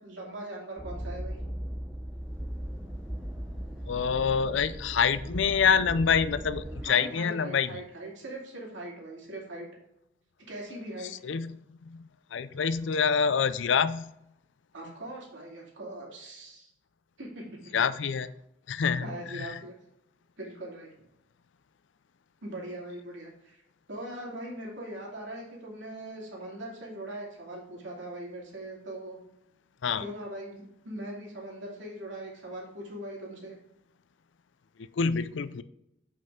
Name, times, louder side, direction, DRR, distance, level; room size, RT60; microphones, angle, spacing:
voice 1, 0.0-1.4 6.8-9.7 10.5-11.1 14.7-16.7 17.2-17.8 19.0-19.8 20.4-20.9 22.4-23.6 23.9-29.2 30.0-33.6, right 1 dB, 80° right, -3 dB, 2.6 m, -41 dB
sound 1, 0.8-6.9, equal, 5° right, 0.8 m, -38 dB
voice 2, 3.9-7.8 11.0-14.1 17.7-18.3 18.7-19.6 29.8-30.0 34.8-35.6, left 6 dB, 85° left, 15 dB, 0.5 m, -27 dB
8.0 x 5.5 x 3.7 m, 0.81 s
head